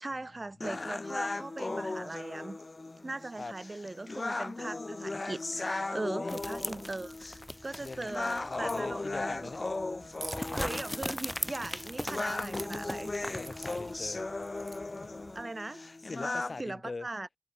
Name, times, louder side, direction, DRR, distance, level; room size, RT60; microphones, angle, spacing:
voice 1, 0.0-2.6 3.0-9.5 10.5-13.2 15.3-15.9 16.6-17.3, right 2 dB, 45° right, 1.2 m, -40 dB
sound 1, 0.6-16.6, left 2 dB, 55° left, 1.2 m, -37 dB
sound 2, 6.3-8.5 8.9-9.0 10.3-14.0, left 1 dB, 10° left, 0.6 m, -38 dB
voice 2, 7.8-8.1 8.5-9.6 13.3-14.2 15.0-15.1 16.1-17.1, left 3 dB, 75° left, 1.3 m, -41 dB
Crack, 8.5-15.4, right 3 dB, 75° right, 1.4 m, -50 dB
wide cardioid pair, 60°, 0 cm